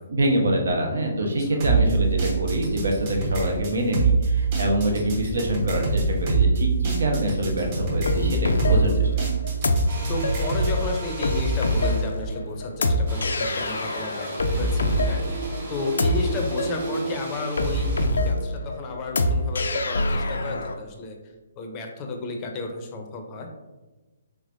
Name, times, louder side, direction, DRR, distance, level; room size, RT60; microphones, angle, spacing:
voice 1, 0.1-9.1, right 1 dB, 85° right, 1 dB, 0.8 m, -25 dB
sound 1, 1.6-10.8, right 5 dB, 40° right, 0.8 m, -24 dB
sound 2, 8.1-20.7, left 1 dB, 85° left, 0.4 m, -25 dB
voice 2, 8.6-9.0 10.1-21.2 21.6-23.5, left 3 dB, 25° left, 2 dB, 0.5 m, -33 dB
sound 3, 9.9-12.2 13.1-18.1, right 3 dB, 65° right, 1.3 m, -35 dB
3.4 x 3.3 x 2.5 m, 1.1 s
hypercardioid pair, 155°, 0 cm